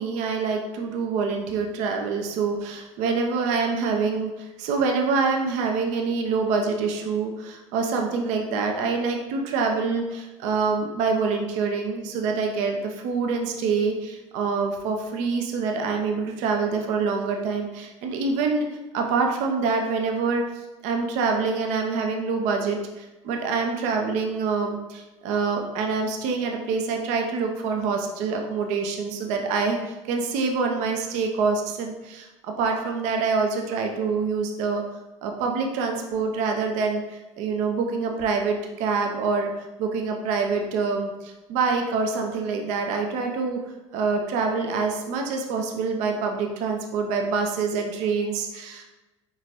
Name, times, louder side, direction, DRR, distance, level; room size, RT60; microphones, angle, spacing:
voice 1, 0.0-18.7 18.9-20.4 20.8-34.8 35.2-39.5 39.8-43.6 43.9-48.8, right 4 dB, 50° right, 3 dB, 0.6 m, -26 dB
4.7 x 3.7 x 2.9 m, 1.1 s
figure-of-eight pair, 65°, 16 cm